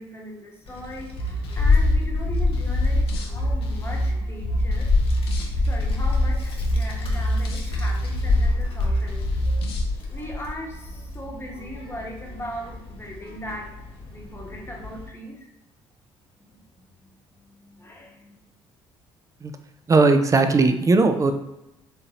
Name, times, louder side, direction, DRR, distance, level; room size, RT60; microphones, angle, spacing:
voice 1, 0.0-4.9 5.6-9.3 10.1-15.5 16.4-18.3, equal, 20° left, 0 dB, 1.0 m, -39 dB
Child speech kid speaking, 0.6-15.1, left 3 dB, 45° left, 1.2 m, -27 dB
sound 1, 1.2-9.9, right 1 dB, 85° left, 0.5 m, -26 dB
voice 2, 19.9-21.3, right 3 dB, 25° right, 8 dB, 0.4 m, -18 dB
3.6 x 2.7 x 2.8 m, 0.89 s
hypercardioid pair, 50°, 13 cm